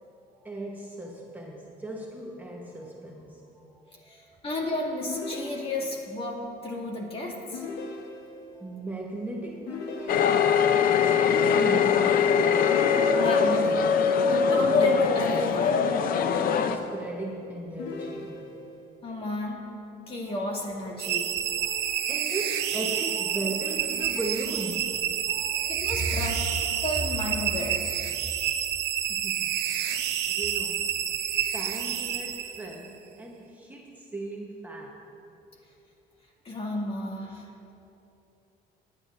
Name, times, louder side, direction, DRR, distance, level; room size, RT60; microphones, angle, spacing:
voice 1, 0.4-4.4 8.0-8.1 8.5-10.9 11.6-13.4 16.6-18.8 20.2-20.4 20.9-26.5 27.4-27.5 29.1-31.0 31.5-35.0, right 1 dB, 10° right, -2 dB, 1.0 m, -37 dB
voice 2, 4.1-7.6 13.1-13.8 14.3-15.9 19.0-19.6 20.1-21.3 25.7-26.4 26.8-27.8 36.4-37.5, left 2 dB, 35° left, -2 dB, 2.3 m, -32 dB
sound 1, 5.1-6.1 7.5-8.6 9.7-10.7 12.7-13.7 14.3-15.3 16.1-17.2 17.8-18.8, left 3 dB, 80° left, 1.1 m, -39 dB
sound 2, 10.1-16.8, left 6 dB, 60° left, 0.6 m, -22 dB
sound 3, 21.0-32.9, right 10 dB, 85° right, 0.8 m, -29 dB
20.5 x 10.0 x 2.6 m, 2.8 s
cardioid pair, 110°, 17 cm